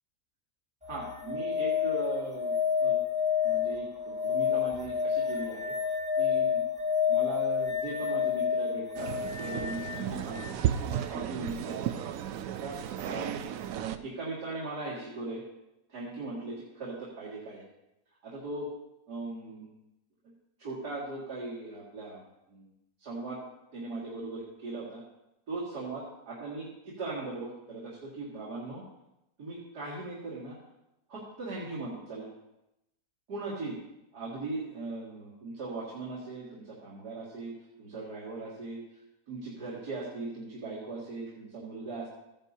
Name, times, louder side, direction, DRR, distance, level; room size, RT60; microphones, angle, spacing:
sound 1, 0.8-10.6 13.0-13.1, left 7 dB, 5° right, 0.9 m, -29 dB
voice 1, 0.9-2.5 2.8-3.0 3.4-5.7 6.2-6.6 7.1-9.1 9.4-10.6 10.9-11.9 12.6-13.4 13.9-15.4 15.9-17.6 18.2-18.7 19.1-19.7 20.6-22.7 23.0-23.4 23.7-25.0 25.5-28.8 29.4-30.5 31.1-32.3 33.3-33.8 34.1-38.8 39.3-42.1, right 3 dB, 85° right, -7 dB, 2.8 m, -39 dB
sound 2, 8.9-14.0, right 10 dB, 70° right, 0.9 m, -34 dB
14.5 x 10.5 x 2.8 m, 0.89 s
omnidirectional pair, 1.7 m